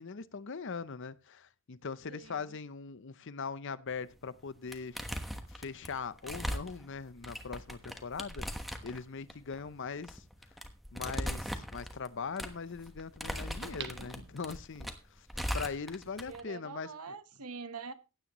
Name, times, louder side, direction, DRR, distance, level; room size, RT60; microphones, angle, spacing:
voice 1, 0.0-5.0 5.5-10.2 10.9-15.3 15.5-16.9, left 5 dB, 55° left, 0.6 m, -41 dB
voice 2, 2.1-2.6 16.3-17.9, right 5 dB, 85° right, 1.1 m, -44 dB
sound 1, 4.1-4.4 4.7-16.4, equal, ahead, 1.1 m, -39 dB
sound 2, 13.6-14.9 15.4-15.5, right 7 dB, 50° right, 1.0 m, -46 dB
16.0 x 9.9 x 3.0 m
head